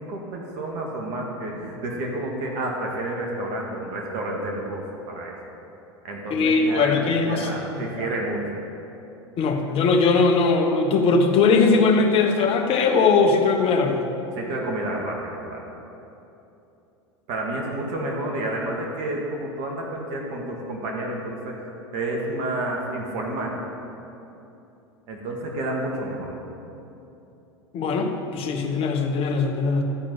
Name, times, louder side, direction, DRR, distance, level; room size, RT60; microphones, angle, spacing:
voice 1, 0.0-5.3 6.0-8.6 14.3-15.6 17.3-21.6 21.9-23.6 25.1-26.4, right 1 dB, 55° right, -1 dB, 2.0 m, -30 dB
voice 2, 6.3-7.5 7.8-8.1 9.4-14.0 27.7-29.8, left 4 dB, 40° left, 3 dB, 1.3 m, -20 dB
13.5 x 4.9 x 7.7 m, 2.9 s
hypercardioid pair, 90°, 14 cm